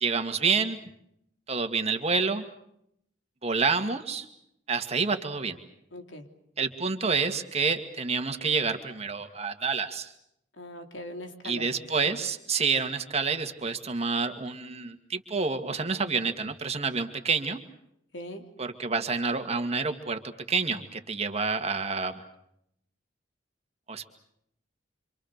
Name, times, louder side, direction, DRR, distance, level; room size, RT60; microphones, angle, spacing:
voice 1, 0.0-0.8 1.5-2.4 3.4-4.3 4.7-5.6 6.6-10.1 11.4-17.6 18.6-22.2 23.9-24.1, right 4 dB, 35° right, 6 dB, 2.2 m, -28 dB
voice 2, 5.9-6.3 10.6-12.1 18.1-18.4, left 1 dB, 90° left, 5 dB, 3.3 m, -41 dB
27.0 x 27.0 x 6.7 m, 0.75 s
head